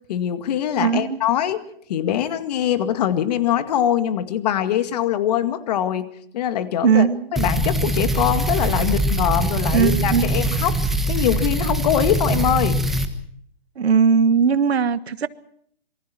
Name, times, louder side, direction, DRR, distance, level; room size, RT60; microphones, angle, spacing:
voice 1, 0.1-1.6 1.9-6.1 6.3-10.8 11.1-12.8, left 10 dB, 40° left, 11 dB, 2.1 m, -22 dB
voice 2, 0.8-1.2 6.8-7.3 9.7-10.4 13.8-15.3, right 6 dB, 80° right, 15 dB, 1.5 m, -19 dB
sound 1, 7.4-13.1, right 1 dB, ahead, 1.2 m, -22 dB
27.0 x 24.0 x 4.5 m, 0.68 s
hypercardioid pair, 155°, 31 cm